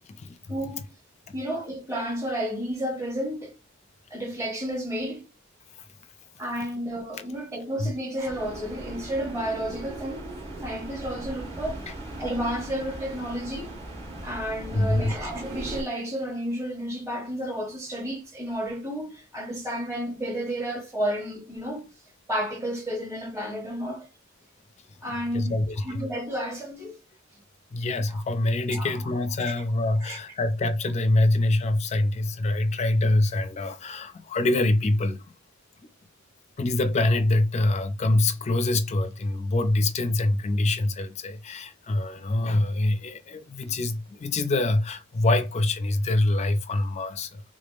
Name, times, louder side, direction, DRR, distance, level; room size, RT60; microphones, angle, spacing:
voice 1, 0.5-0.8 1.3-3.5 4.1-5.3 6.4-10.3 10.6-11.9 12.2-13.8 14.2-21.9 22.3-24.1 25.0-27.0 28.1-28.2 28.7-29.1 30.0-30.2, equal, 15° right, 1.2 m, -32 dB
sound 1, 8.2-15.8, right 1 dB, 30° right, 1.5 m, -38 dB
voice 2, 14.7-15.1 25.3-26.1 27.7-35.2 36.6-47.4, left 2 dB, 35° left, 0.4 m, -25 dB
3.6 x 3.4 x 2.4 m
head